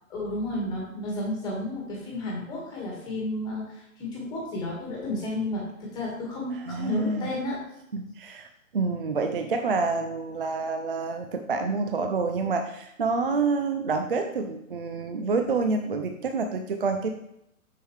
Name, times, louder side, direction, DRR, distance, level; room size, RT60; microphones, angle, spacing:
voice 1, 0.1-7.6, left 1 dB, 10° left, -4 dB, 1.5 m, -32 dB
voice 2, 6.7-7.3 7.9-8.5 8.7-17.1, right 4 dB, 45° right, 5 dB, 0.4 m, -28 dB
6.7 x 6.5 x 3.2 m, 0.79 s
hypercardioid pair, 160°, 42 cm